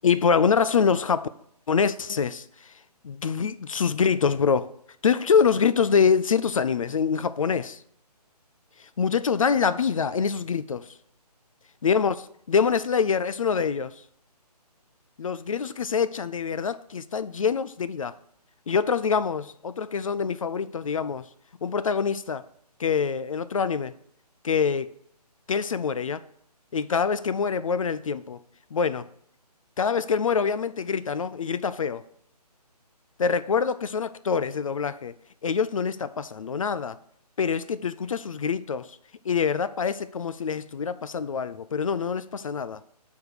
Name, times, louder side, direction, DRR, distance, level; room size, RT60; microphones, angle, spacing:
voice 1, 0.0-1.3 1.7-2.4 3.0-4.7 5.0-7.8 9.0-10.9 11.8-13.9 15.2-18.2 18.7-21.2 21.6-22.4 22.8-23.9 24.4-24.9 25.5-26.2 26.7-28.4 28.7-29.1 29.8-32.0 33.2-35.1 35.4-37.0 37.4-38.9 39.3-42.8, left 6 dB, 55° left, 0.4 m, -25 dB
8.7 x 3.6 x 6.5 m
figure-of-eight pair, 155°, 21 cm